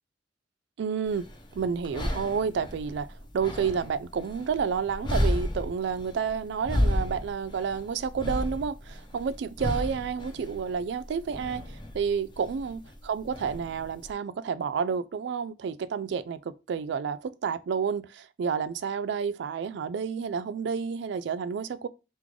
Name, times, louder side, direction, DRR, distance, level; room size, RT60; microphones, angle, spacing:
voice 1, 0.8-1.3 1.5-3.1 3.3-12.8 13.1-21.9, right 6 dB, 70° right, 0.3 m, -30 dB
sound 1, 1.1-14.1, left 1 dB, 25° left, 0.8 m, -33 dB
3.6 x 3.1 x 3.7 m
head